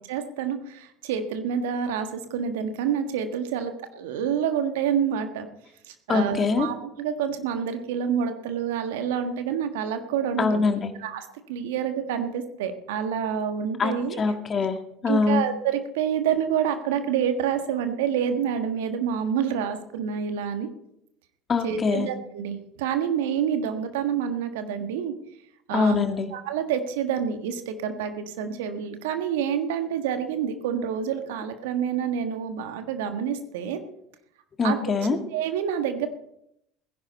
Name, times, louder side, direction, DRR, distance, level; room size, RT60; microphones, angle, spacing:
voice 1, 0.1-5.5 5.9-10.6 11.0-14.2 15.1-20.7 21.6-25.1 25.7-26.0 26.3-33.8 34.6-34.8 35.1-36.1, right 8 dB, 75° right, 7 dB, 1.5 m, -28 dB
voice 2, 6.1-6.7 10.4-10.9 13.8-14.8 15.0-15.4 21.5-22.1 25.7-26.3 34.6-35.2, left 4 dB, 35° left, 7 dB, 1.8 m, -23 dB
18.0 x 11.0 x 4.2 m, 0.77 s
hypercardioid pair, 70°, 0 cm